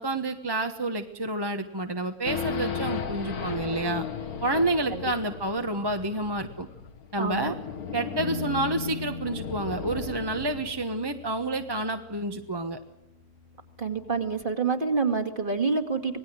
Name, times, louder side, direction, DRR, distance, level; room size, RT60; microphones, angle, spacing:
voice 1, 0.0-4.0 4.4-6.7 7.1-7.5 7.9-12.8, right 2 dB, 15° right, 6 dB, 1.2 m, -29 dB
Race car auto racing / Idling / Accelerating revving vroom, 2.2-10.9, left 6 dB, 80° left, 2.2 m, -36 dB
voice 2, 7.2-7.5 13.8-16.2, right 4 dB, 35° right, 6 dB, 2.6 m, -27 dB
Bass guitar, 8.2-14.4, left 4 dB, 35° left, 1.5 m, -41 dB
26.5 x 19.5 x 8.0 m, 0.90 s
omnidirectional pair, 1.6 m